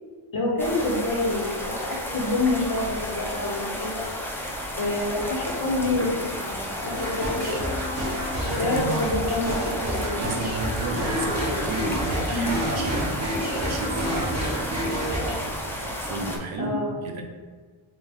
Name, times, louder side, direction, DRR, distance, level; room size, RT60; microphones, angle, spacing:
voice 1, 0.3-4.0 4.8-7.6 8.6-10.2 12.3-12.6 16.6-16.9, left 2 dB, 40° left, -4 dB, 1.1 m, -27 dB
sound 1, 0.6-16.4, equal, 5° left, 0.4 m, -32 dB
sound 2, 6.9-15.3, equal, 30° right, 1.1 m, -29 dB
voice 2, 8.4-9.0 10.2-13.2 13.6-17.2, right 3 dB, 70° right, 2 dB, 0.7 m, -33 dB
3.4 x 2.6 x 3.5 m, 1.5 s
wide cardioid pair, 145°, 49 cm